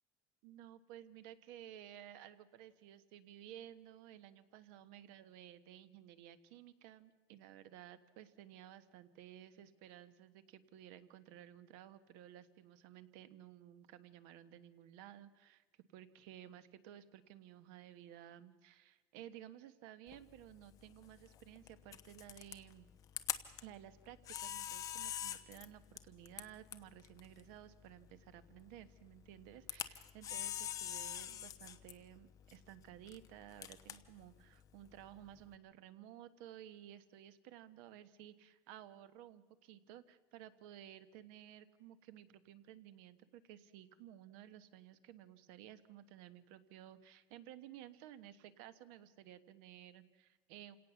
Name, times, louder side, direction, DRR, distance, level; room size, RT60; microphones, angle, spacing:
voice 1, 0.4-15.6 15.9-22.9 23.6-50.8, right 11 dB, 85° right, 13 dB, 1.3 m, -55 dB
Camera, 20.1-35.5, left 11 dB, 30° left, 1.0 m, -47 dB
28.0 x 17.5 x 7.1 m, 1.3 s
cardioid pair, 180°, 11 cm